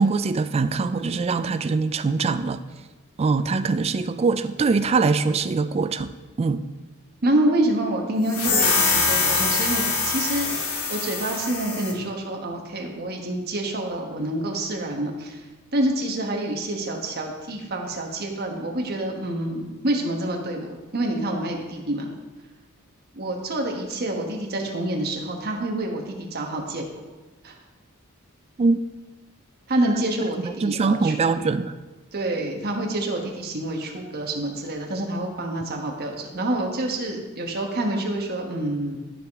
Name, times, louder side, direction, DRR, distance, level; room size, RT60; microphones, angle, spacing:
voice 1, 0.0-2.6 3.2-6.1 6.4-6.6 28.6-28.8 30.2-31.7, right 4 dB, 30° right, 10 dB, 0.3 m, -23 dB
voice 2, 7.2-10.5 10.9-15.4 15.7-22.1 23.2-26.8 27.4-27.5 29.7-31.1 32.1-39.0, right 1 dB, 50° right, 1 dB, 1.2 m, -27 dB
sound 1, 8.3-12.0, left 4 dB, 75° left, 1.2 m, -23 dB
12.5 x 4.9 x 3.5 m, 1.2 s
head